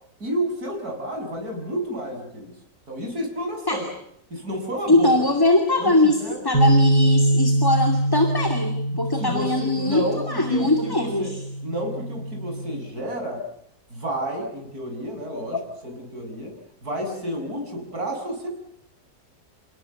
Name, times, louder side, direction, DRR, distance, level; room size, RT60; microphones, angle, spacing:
voice 1, 0.2-2.6 2.9-3.9 4.3-5.2 5.8-6.4 8.9-11.3 11.6-13.4 13.9-16.5 16.8-18.5, equal, 65° right, 2 dB, 7.5 m, -31 dB
voice 2, 4.9-11.4, left 2 dB, 15° left, 5 dB, 2.4 m, -21 dB
sound 1, 6.5-12.8, right 1 dB, 85° right, 6.6 m, -23 dB
29.5 x 18.5 x 8.3 m, 0.73 s
omnidirectional pair, 1.7 m